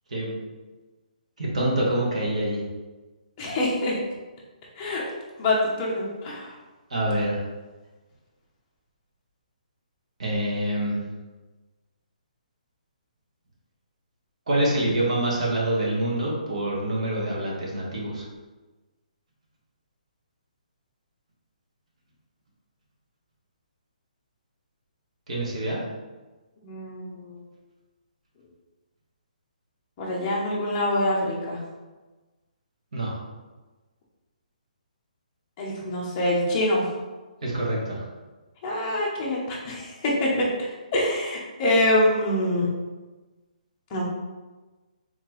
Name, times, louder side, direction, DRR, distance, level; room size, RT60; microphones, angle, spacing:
voice 1, 1.4-2.6 6.9-7.4 10.2-11.0 14.5-18.3 25.3-25.8 32.9-33.2 37.4-38.0, right 1 dB, 50° right, -3 dB, 1.4 m, -26 dB
voice 2, 3.4-3.9 4.8-5.0 5.4-6.5 26.6-27.4 30.0-31.6 35.6-36.8 38.6-40.5 40.9-42.7 43.9-44.0, left 1 dB, 15° left, -4 dB, 0.7 m, -25 dB
4.2 x 3.9 x 3.1 m, 1.2 s
hypercardioid pair, 180°, 5 cm